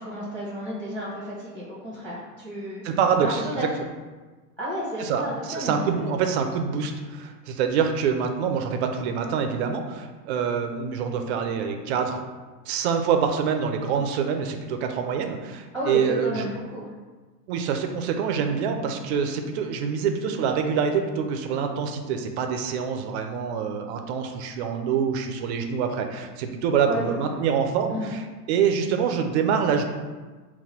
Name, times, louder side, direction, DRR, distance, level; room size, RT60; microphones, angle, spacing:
voice 1, 0.0-2.8 3.2-3.7 4.6-6.1 15.7-16.9 18.4-18.6 26.8-27.4 27.9-28.1, equal, 5° left, -6 dB, 0.9 m, -32 dB
voice 2, 2.8-3.7 5.0-12.2 12.7-16.5 17.5-29.8, right 6 dB, 45° right, 5 dB, 0.5 m, -26 dB
3.9 x 2.2 x 4.3 m, 1.3 s
hypercardioid pair, 105°, 49 cm